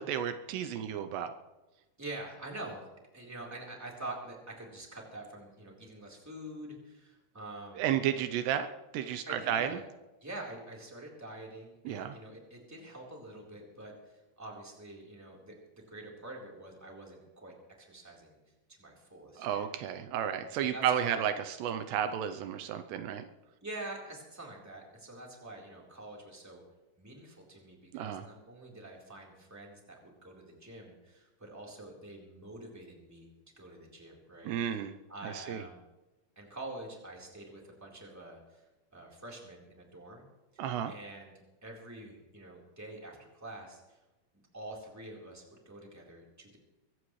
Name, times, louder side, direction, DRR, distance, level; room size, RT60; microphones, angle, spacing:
voice 1, 0.0-1.3 7.8-9.8 11.9-12.2 19.4-23.3 27.9-28.2 34.5-34.9 35.2-35.6 40.6-40.9, right 9 dB, 80° right, 9 dB, 2.8 m, -32 dB
voice 2, 2.0-2.9 3.1-7.8 9.2-9.8 10.2-18.4 18.7-19.6 20.5-21.3 23.6-26.6 27.0-33.3 33.6-35.8 36.3-38.6 38.9-40.2 40.5-41.3 41.6-44.0 44.5-46.6, right 2 dB, 5° right, -2 dB, 3.3 m, -46 dB
23.5 x 16.0 x 3.2 m, 1.1 s
omnidirectional pair, 4.9 m